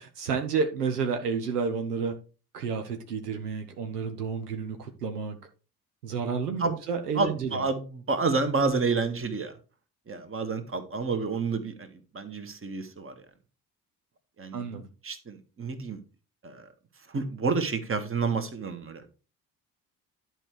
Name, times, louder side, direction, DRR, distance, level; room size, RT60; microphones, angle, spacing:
voice 1, 0.0-2.2 2.5-5.4 6.0-7.6 14.5-14.9, right 5 dB, 80° right, 1.0 m, -30 dB
voice 2, 7.2-9.5 10.1-13.1 14.4-16.0 16.4-16.7 17.1-19.1, right 4 dB, 30° right, 1.8 m, -29 dB
11.0 x 4.7 x 4.9 m
figure-of-eight pair, 45°, 46 cm